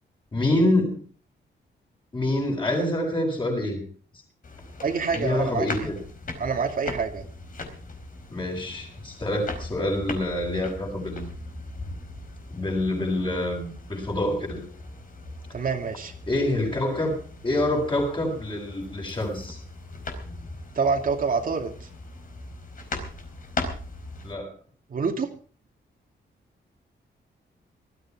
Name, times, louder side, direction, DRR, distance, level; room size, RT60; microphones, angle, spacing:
voice 1, 0.3-1.0 2.1-3.8 5.1-6.0 8.3-11.3 12.5-14.6 16.3-19.6 24.2-24.5, left 1 dB, 25° left, 2 dB, 7.4 m, -26 dB
sound 1, 4.4-24.3, left 2 dB, 45° left, 4.5 m, -39 dB
voice 2, 4.8-5.9 6.4-7.2 15.5-16.1 20.7-21.9 24.9-25.3, right 5 dB, 50° right, 3 dB, 2.4 m, -27 dB
19.5 x 14.0 x 4.8 m, 0.41 s
wide cardioid pair, 135°, 19 cm